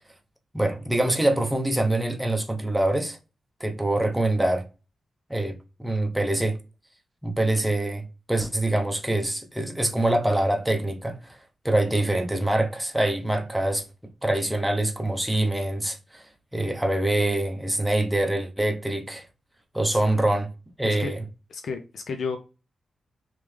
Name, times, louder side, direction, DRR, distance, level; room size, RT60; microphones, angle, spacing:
voice 1, 0.5-3.2 3.6-4.6 5.3-6.6 7.2-11.4 11.6-13.9 14.2-16.3 16.5-19.2 19.7-20.5 20.8-21.2, right 1 dB, 5° right, 0.7 m, -25 dB
voice 2, 20.8-21.1 21.5-22.4, left 5 dB, 65° left, 0.5 m, -32 dB
3.6 x 3.2 x 3.2 m
wide cardioid pair, 125°, 0 cm